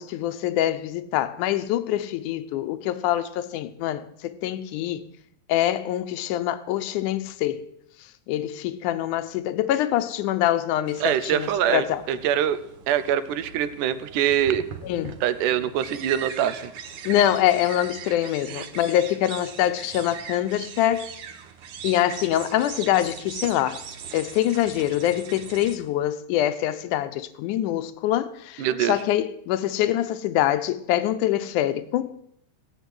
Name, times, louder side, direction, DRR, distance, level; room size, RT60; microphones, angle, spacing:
voice 1, 0.0-5.0 5.5-7.6 8.3-12.0 14.8-15.2 17.0-21.1 21.8-23.8 24.1-32.2, left 12 dB, 80° left, 2.3 m, -24 dB
sound 1, 10.9-25.8, right 7 dB, 60° right, 1.7 m, -40 dB
voice 2, 11.0-12.6 12.9-14.7 15.2-16.7 18.6-18.7 28.6-29.0, right 10 dB, 85° right, 2.4 m, -24 dB
16.5 x 8.2 x 7.8 m
omnidirectional pair, 3.5 m